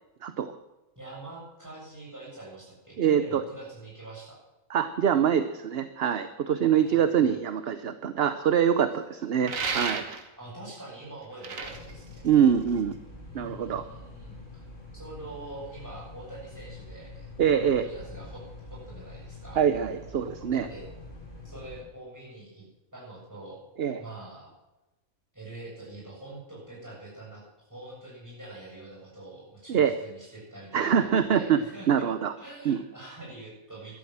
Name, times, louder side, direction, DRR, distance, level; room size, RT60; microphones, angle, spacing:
voice 1, 0.2-0.5 3.0-3.4 4.7-10.0 12.2-12.9 13.3-13.8 17.4-17.9 19.6-20.7 23.8-24.0 29.7-30.0 30.7-32.3 32.6-32.8, right 8 dB, 55° right, 11 dB, 0.9 m, -24 dB
voice 2, 0.9-4.4 6.6-7.4 10.4-12.3 13.3-14.6 14.9-17.3 17.8-18.4 18.7-19.6 20.5-20.9 21.4-22.6 22.9-23.6 24.0-24.5 25.3-32.1 32.4-34.0, right 2 dB, 15° right, -5 dB, 7.7 m, -44 dB
sound 1, 9.4-10.4 11.2-12.9, right 5 dB, 75° right, 1.9 m, -33 dB
sound 2, 11.6-21.8, left 2 dB, 65° left, 4.1 m, -45 dB
13.0 x 12.5 x 7.5 m, 1.0 s
omnidirectional pair, 1.4 m